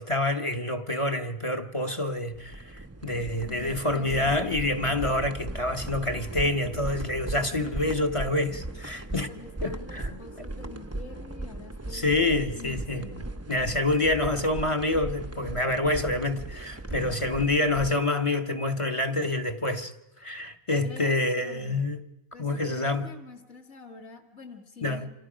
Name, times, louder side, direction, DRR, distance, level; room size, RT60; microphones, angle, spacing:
voice 1, 0.0-9.3 9.6-10.2 11.9-13.1 13.5-19.9 20.2-22.0 22.4-23.1 24.8-25.1, left 2 dB, 25° left, 1.0 m, -27 dB
sound 1, 2.2-17.9, right 2 dB, 15° right, 0.6 m, -38 dB
voice 2, 3.1-4.6 9.3-12.1 12.5-13.3 16.9-17.5 20.8-21.9 22.3-25.1, left 3 dB, 50° left, 2.3 m, -46 dB
28.5 x 27.0 x 5.1 m
omnidirectional pair, 1.5 m